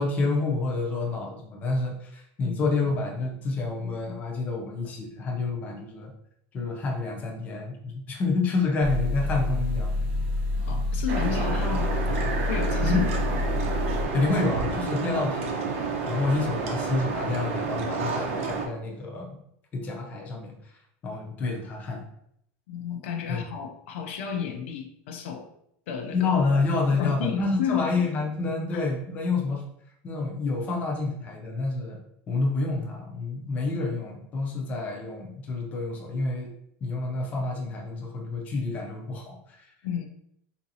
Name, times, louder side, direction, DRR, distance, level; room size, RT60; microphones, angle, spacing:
voice 1, 0.0-6.1 6.5-9.9 12.8-13.1 14.1-15.4 16.0-19.4 19.7-20.5 21.0-22.0 23.3-23.4 26.1-29.6 30.0-32.0 32.3-36.5 36.8-39.6, left 3 dB, 25° left, -1 dB, 0.6 m, -28 dB
sound 1, 8.8-14.0, left 2 dB, 55° right, 0.8 m, -27 dB
voice 2, 10.6-12.1 12.5-13.0 13.3-13.4 15.1-15.2 22.7-25.5 25.9-26.4 26.9-27.9 28.7-28.8 39.8-40.1, left 8 dB, 80° left, 4 dB, 0.5 m, -32 dB
sound 2, 11.1-18.7, right 4 dB, 85° right, 0.7 m, -30 dB
3.9 x 2.6 x 2.7 m, 0.73 s
supercardioid pair, 170°, 7 cm